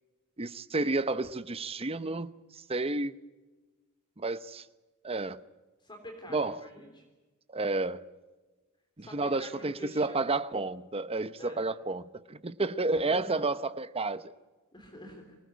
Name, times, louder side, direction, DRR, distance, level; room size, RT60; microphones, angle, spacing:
voice 1, 0.4-3.1 4.2-4.6 5.0-5.4 6.3-6.6 7.5-8.0 9.0-14.3, right 3 dB, 25° right, 0.9 m, -31 dB
voice 2, 5.8-7.0 9.0-10.2 11.4-11.6 13.0-13.5 14.7-15.4, equal, 20° left, 3.5 m, -47 dB
24.5 x 19.5 x 9.5 m
head